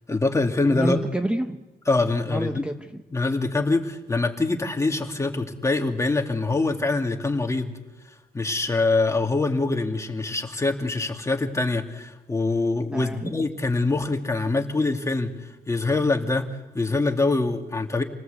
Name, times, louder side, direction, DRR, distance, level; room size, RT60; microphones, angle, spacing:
voice 1, 0.1-1.0 1.9-2.6 3.1-7.7 8.3-18.0, left 3 dB, 20° left, 3 dB, 2.5 m, -24 dB
voice 2, 0.7-1.6 2.2-3.0 12.9-13.3, right 1 dB, 5° right, 6 dB, 1.0 m, -28 dB
28.5 x 19.0 x 8.3 m, 1.1 s
cardioid pair, 115°, 16 cm